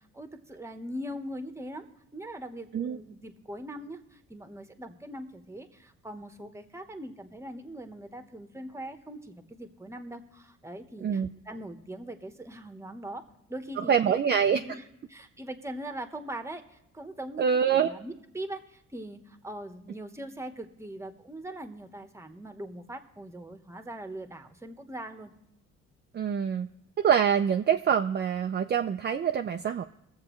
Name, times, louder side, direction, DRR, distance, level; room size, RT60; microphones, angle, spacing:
voice 1, 0.1-1.8 2.1-13.2 13.5-14.2 14.5-17.5 17.7-25.3, right 1 dB, 10° right, 7 dB, 1.1 m, -41 dB
voice 2, 13.8-14.6 17.4-17.9 26.1-26.7 27.0-29.8, right 7 dB, 35° right, 6 dB, 0.5 m, -25 dB
21.5 x 7.4 x 3.1 m, 0.82 s
cardioid pair, 90°, 30 cm